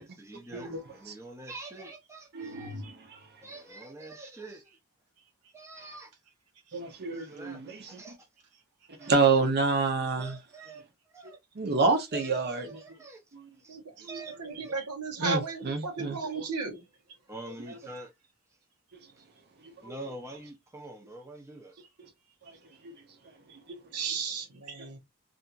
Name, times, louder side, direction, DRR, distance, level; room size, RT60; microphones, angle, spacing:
voice 1, 0.0-2.7 3.4-4.7 5.5-6.1 7.1-8.2 9.0-9.5 10.2-11.4 12.1-13.2 13.6-13.8 14.0-14.8 17.3-18.1 19.8-21.7, right 2 dB, 15° right, 0.6 m, -45 dB
voice 2, 2.3-3.2 6.7-8.0 9.0-10.4 11.5-12.8 13.3-13.5 15.2-16.4 19.6-19.9 22.5-22.6 22.8-22.9 23.7-23.8 24.8-24.9, right 4 dB, 45° right, 0.7 m, -28 dB
voice 3, 13.7-16.8 23.9-25.0, right 4 dB, 85° right, 0.9 m, -35 dB
2.7 x 2.5 x 2.3 m
head